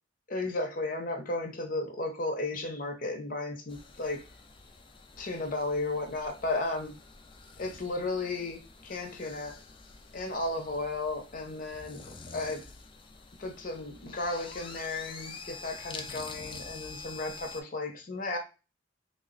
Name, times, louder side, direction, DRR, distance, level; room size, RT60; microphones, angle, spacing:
voice 1, 0.3-4.2 5.2-6.9 7.6-9.6 10.1-12.0 12.3-12.6 13.4-18.4, left 2 dB, 45° left, 4 dB, 0.8 m, -34 dB
sound 1, 3.7-17.6, left 4 dB, 25° left, 0.4 m, -47 dB
3.3 x 2.1 x 3.9 m, 0.30 s
head